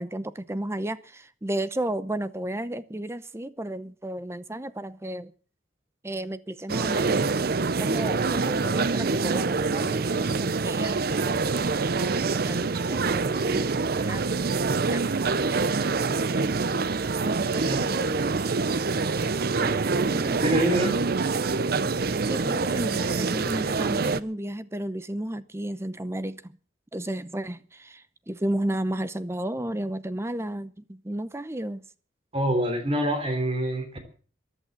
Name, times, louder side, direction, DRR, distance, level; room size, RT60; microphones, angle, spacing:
voice 1, 0.0-5.3 6.0-7.2 7.8-11.4 11.9-14.3 14.9-15.5 15.8-16.0 17.2-18.3 19.5-20.5 21.9-26.5 26.9-31.8, right 1 dB, 15° right, 0.7 m, -33 dB
sound 1, 6.7-24.2, right 4 dB, 55° right, 0.6 m, -25 dB
voice 2, 20.4-20.9 32.3-34.0, right 1 dB, 30° right, 3.5 m, -25 dB
14.5 x 11.0 x 7.3 m
head